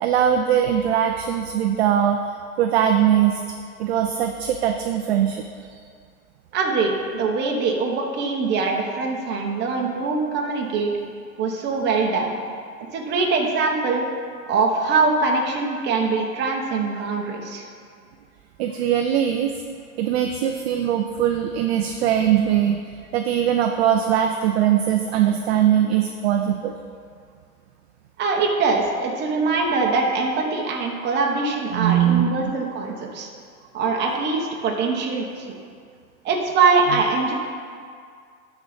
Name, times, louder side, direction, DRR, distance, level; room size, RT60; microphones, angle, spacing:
voice 1, 0.0-2.2 2.6-3.4 3.8-5.8 16.9-17.1 18.6-19.5 20.0-26.7 31.7-32.5 36.9-37.1, right 10 dB, 45° right, 5 dB, 0.5 m, -21 dB
voice 2, 6.5-10.9 11.4-12.4 12.9-14.1 14.5-17.6 28.2-33.3 33.7-35.5 36.2-37.3, right 4 dB, 20° right, 0 dB, 1.1 m, -23 dB
12.0 x 4.2 x 5.0 m, 2.2 s
hypercardioid pair, 135°, 46 cm